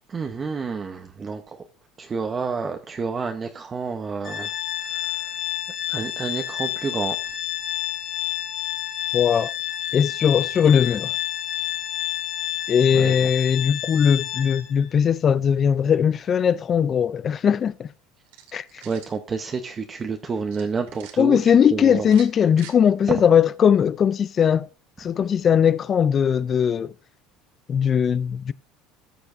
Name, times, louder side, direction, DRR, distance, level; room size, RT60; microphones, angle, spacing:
voice 1, 0.1-1.7 2.0-4.5 4.8-5.4 5.9-7.2 12.9-13.3 18.8-22.1 23.1-23.2, right 5 dB, 25° right, 0.8 m, -29 dB
Organ, 4.2-14.9, left 13 dB, 50° left, 2.5 m, -29 dB
voice 2, 9.1-9.5 9.9-11.1 12.7-17.9 18.5-18.8 21.2-24.7 25.0-26.9 27.7-28.5, left 8 dB, 35° left, 0.4 m, -19 dB
sound 1, 18.3-19.2 20.5-21.1 22.0-22.8, right 9 dB, 90° right, 2.2 m, -45 dB
14.5 x 6.9 x 2.6 m
cardioid pair, 130°, 0 cm